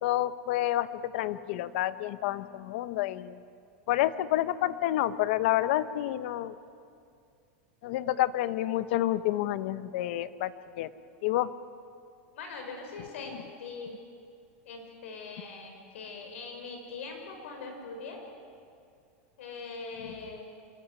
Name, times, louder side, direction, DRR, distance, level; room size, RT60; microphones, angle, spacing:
voice 1, 0.0-3.4 3.9-6.5 7.8-10.9 11.2-11.5 20.0-20.1, left 14 dB, 60° left, 14 dB, 0.9 m, -29 dB
voice 2, 12.3-13.9 14.6-18.2 19.4-20.4, left 4 dB, 90° left, 3 dB, 5.8 m, -41 dB
26.5 x 14.0 x 9.9 m, 2.4 s
supercardioid pair, 165°, 7 cm